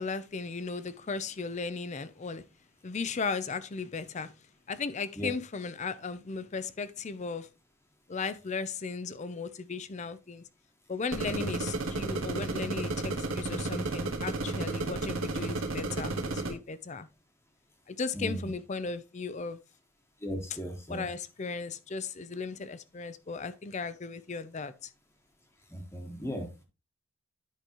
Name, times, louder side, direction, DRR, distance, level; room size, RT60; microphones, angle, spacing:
voice 1, 0.0-2.4 2.8-4.3 4.7-7.5 8.1-10.4 10.9-17.1 17.9-19.6 20.5-20.6 20.9-24.9, left 4 dB, 35° left, 0.5 m, -36 dB
sound 1, 11.1-16.5, right 2 dB, 80° right, 1.3 m, -33 dB
voice 2, 18.1-18.5 20.2-21.1 25.7-26.6, equal, 15° left, 1.2 m, -37 dB
10.0 x 5.1 x 3.0 m
head